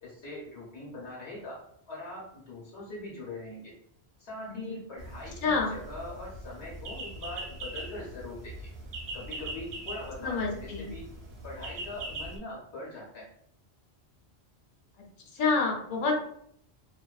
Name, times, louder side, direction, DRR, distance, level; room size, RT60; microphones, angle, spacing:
voice 1, 0.0-3.7 4.2-8.7 9.1-11.1 11.4-13.3, left 2 dB, 85° left, -5 dB, 1.1 m, -42 dB
sound 1, 5.0-12.4, right 1 dB, 70° right, 0.8 m, -41 dB
voice 2, 5.4-5.7 10.2-10.9 15.3-16.1, left 4 dB, 55° left, 1 dB, 0.7 m, -28 dB
2.5 x 2.2 x 2.3 m, 0.69 s
omnidirectional pair, 1.1 m